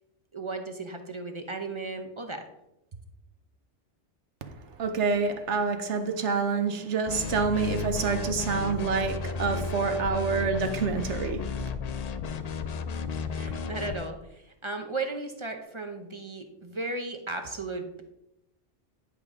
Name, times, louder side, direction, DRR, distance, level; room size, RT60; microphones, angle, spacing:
voice 1, 0.3-2.4 13.3-18.0, right 3 dB, 30° right, 0.6 m, -35 dB
voice 2, 4.8-11.5, right 5 dB, 70° right, 1.1 m, -27 dB
sound 1, 7.1-14.1, left 4 dB, 70° left, 0.4 m, -33 dB
10.0 x 5.1 x 3.6 m
omnidirectional pair, 1.3 m